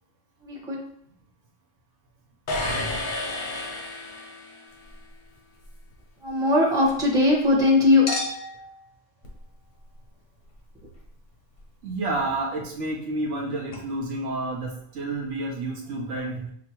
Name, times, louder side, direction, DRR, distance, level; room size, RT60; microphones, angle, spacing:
voice 1, 0.4-0.8 6.2-8.0, left 2 dB, 5° right, -6 dB, 1.1 m, -20 dB
sound 1, 2.5-4.7, left 1 dB, 45° left, 0.7 m, -30 dB
Chink clink, 4.7-7.6 8.1-13.4 13.7-13.8, left 2 dB, 80° left, 1.3 m, -40 dB
voice 2, 11.8-16.5, right 2 dB, 70° right, 0 dB, 0.9 m, -30 dB
6.0 x 2.3 x 2.9 m, 0.69 s
omnidirectional pair, 1.3 m